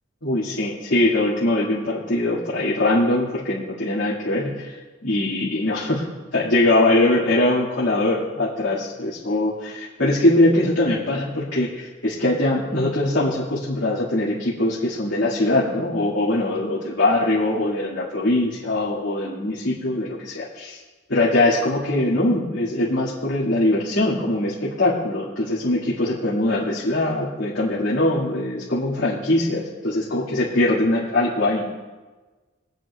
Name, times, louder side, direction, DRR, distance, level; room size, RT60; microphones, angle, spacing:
voice 1, 0.2-4.8 5.0-6.0 6.3-20.8 21.1-31.6, left 1 dB, 75° left, -9 dB, 2.3 m, -22 dB
23.0 x 9.1 x 2.4 m, 1.3 s
head